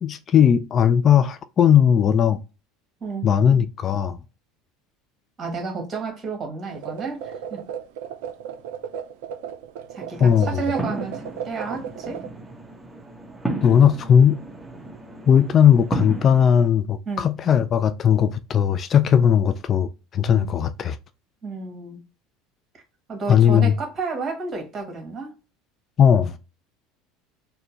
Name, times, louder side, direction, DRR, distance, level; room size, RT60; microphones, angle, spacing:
voice 1, 0.0-2.4 3.2-4.2 10.2-10.6 13.6-14.4 15.3-21.0 23.3-23.7 26.0-26.4, left 8 dB, 40° left, 0.3 m, -18 dB
voice 2, 5.4-7.6 9.9-12.2 17.0-17.3 20.3-20.5 21.4-22.0 22.7-22.8 23.1-25.3, right 4 dB, 35° right, 1.7 m, -31 dB
sound 1, 6.7-12.3, right 9 dB, 70° right, 0.5 m, -35 dB
sound 2, 10.1-16.7, right 2 dB, ahead, 1.3 m, -34 dB
4.3 x 2.1 x 2.9 m
hypercardioid pair, 75°, 0 cm